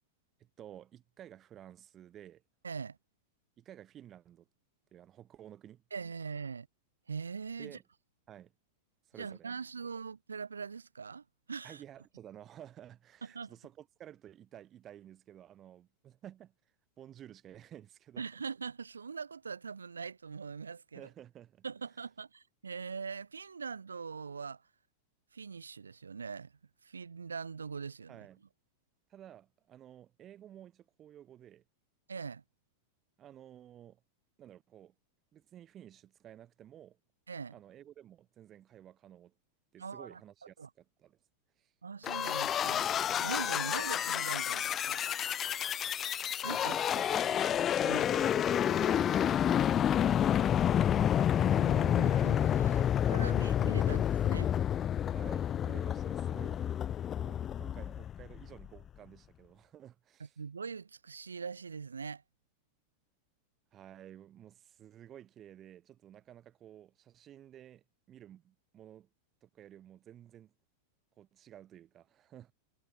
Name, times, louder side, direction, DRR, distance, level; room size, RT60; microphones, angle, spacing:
voice 1, 0.4-2.4 3.6-4.5 4.9-5.8 7.6-7.8 8.3-8.5 9.1-9.5 11.6-16.5 17.0-18.2 20.9-21.6 28.1-28.4 29.1-31.6 33.2-34.0 34.4-34.9 35.3-37.0 37.5-39.3 39.7-41.2 41.6-41.7 46.5-52.2 52.6-53.0 55.1-56.7 57.1-60.4 63.7-69.1 69.4-70.5 71.2-72.5, right 11 dB, 30° right, 4.7 m, -53 dB
voice 2, 2.6-3.0 5.9-6.7 7.1-7.8 9.2-11.8 13.3-13.5 18.2-21.1 21.6-24.6 25.3-26.5 26.8-28.3 32.1-32.4 37.3-37.6 39.8-40.2 40.6-40.7 41.8-42.9 43.2-45.1 46.4-46.7 47.8-48.1 51.1-54.5 60.2-62.2, right 5 dB, 75° right, 4.4 m, -42 dB
sound 1, 42.0-58.7, left 10 dB, 25° left, 1.1 m, -29 dB
figure-of-eight pair, 90°, 0 cm